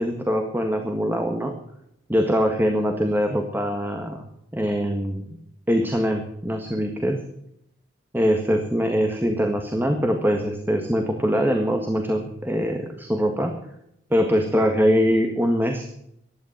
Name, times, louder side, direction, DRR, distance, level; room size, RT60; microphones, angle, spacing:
voice 1, 0.0-1.5 2.1-4.3 4.5-5.3 5.7-7.2 8.1-13.5 14.1-15.9, equal, 10° right, 4 dB, 1.7 m, -23 dB
15.5 x 11.5 x 6.6 m, 0.75 s
head